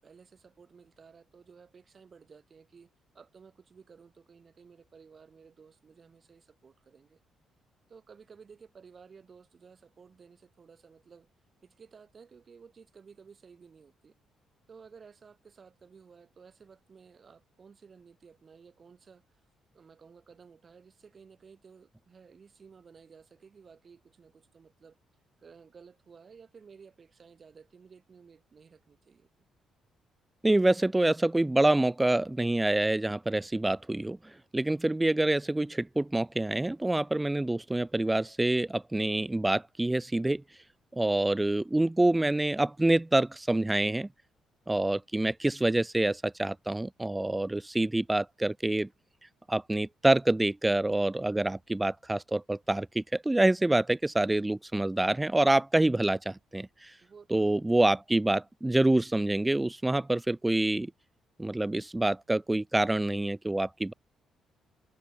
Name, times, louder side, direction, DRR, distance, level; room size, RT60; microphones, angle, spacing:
voice 1, 0.0-7.2 7.9-11.3 11.6-14.1 14.7-19.4 19.7-25.0 25.4-29.5 57.0-57.6, right 5 dB, 40° right, 6.5 m, -55 dB
voice 2, 30.4-34.2 34.5-40.4 40.9-44.1 44.7-48.9 49.5-56.9 57.3-60.9 61.4-63.9, right 2 dB, 10° right, 0.4 m, -26 dB
cardioid pair, 90°, 0 cm